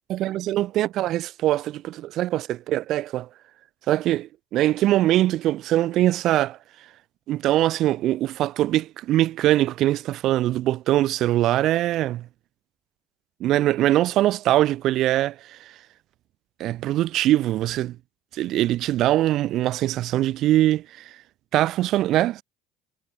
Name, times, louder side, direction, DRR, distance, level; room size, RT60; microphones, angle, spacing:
voice 1, 0.1-3.3 3.9-6.6 7.3-12.3 13.4-15.7 16.6-18.0 18.3-21.1 21.5-22.4, right 14 dB, 60° right, 1.0 m, -22 dB
hypercardioid pair, 70°, 0 cm